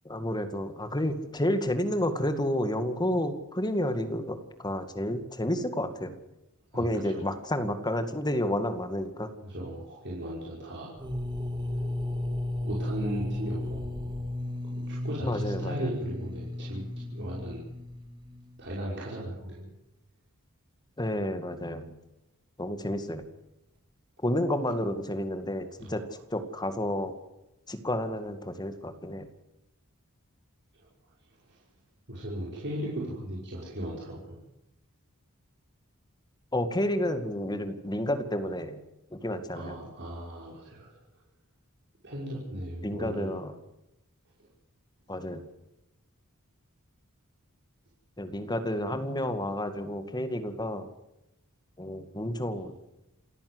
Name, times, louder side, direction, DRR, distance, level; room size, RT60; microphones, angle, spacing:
voice 1, 0.1-6.2 6.7-9.3 15.2-15.9 21.0-22.0 22.6-23.3 24.2-26.0 26.3-27.1 27.7-29.3 36.5-38.8 39.1-39.8 42.8-43.6 45.1-45.5 48.2-50.9 51.8-52.7, left 1 dB, 20° left, 8 dB, 2.1 m, -30 dB
voice 2, 6.7-7.3 9.4-11.0 12.6-14.0 14.7-17.6 18.6-19.7 25.8-26.0 32.1-34.3 39.5-40.9 42.0-43.4, right 1 dB, 55° right, -5 dB, 5.8 m, -37 dB
sound 1, 11.0-18.7, left 1 dB, 20° right, 2.3 m, -34 dB
28.0 x 15.0 x 8.1 m, 0.90 s
head